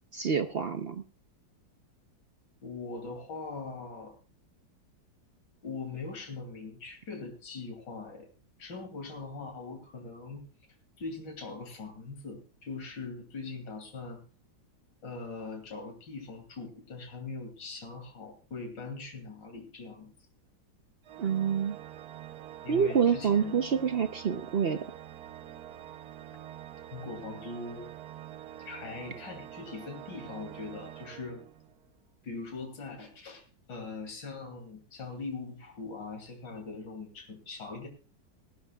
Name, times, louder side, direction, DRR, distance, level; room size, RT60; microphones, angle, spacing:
voice 1, 0.1-1.0 21.2-21.8 22.7-24.8, right 7 dB, 85° right, 8 dB, 0.5 m, -27 dB
voice 2, 2.6-4.1 5.6-8.3 8.6-10.4 11.0-14.2 15.0-20.1 22.6-23.6 26.3-26.4 26.9-27.9 28.6-31.4 32.2-37.9, left 4 dB, 70° left, 3 dB, 3.3 m, -41 dB
Organ, 21.0-31.9, right 12 dB, 65° right, 1.2 m, -46 dB
18.5 x 14.5 x 2.3 m, 0.37 s
omnidirectional pair, 2.0 m